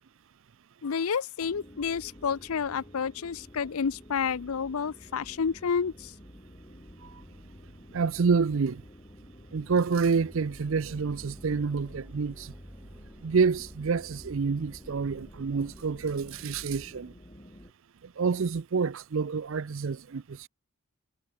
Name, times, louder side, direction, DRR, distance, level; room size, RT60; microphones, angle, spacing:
voice 1, 0.8-6.1, left 6 dB, 75° left, 0.5 m, -30 dB
sound 1, 1.4-17.7, equal, 20° left, 4.3 m, -51 dB
voice 2, 7.9-8.8 9.5-12.5 13.2-17.1 18.0-20.5, right 5 dB, 60° right, 0.5 m, -28 dB
sound 2, 10.1-16.9, equal, 10° right, 4.2 m, -51 dB
head